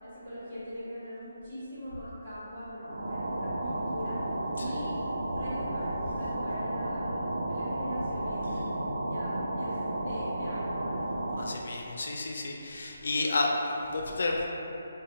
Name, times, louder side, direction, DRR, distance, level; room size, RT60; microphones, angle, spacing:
voice 1, 0.0-4.2 4.6-5.0 5.3-8.5 9.0-11.1, equal, 35° right, -11 dB, 1.4 m, -41 dB
sound 1, 2.8-11.7, right 1 dB, 85° right, 0.4 m, -33 dB
voice 2, 11.4-14.5, left 2 dB, 65° left, 1 dB, 0.4 m, -31 dB
3.3 x 2.1 x 3.8 m, 3.0 s
hypercardioid pair, 170°, 0 cm